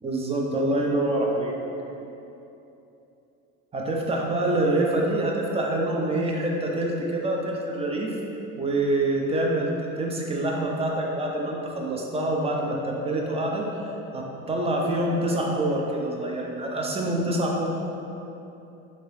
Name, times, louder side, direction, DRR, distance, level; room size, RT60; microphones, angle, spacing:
voice 1, 0.0-1.6 3.7-8.1 8.6-17.7, right 1 dB, 20° right, -1 dB, 0.4 m, -26 dB
2.9 x 2.7 x 3.1 m, 2.9 s
supercardioid pair, 85°, 30 cm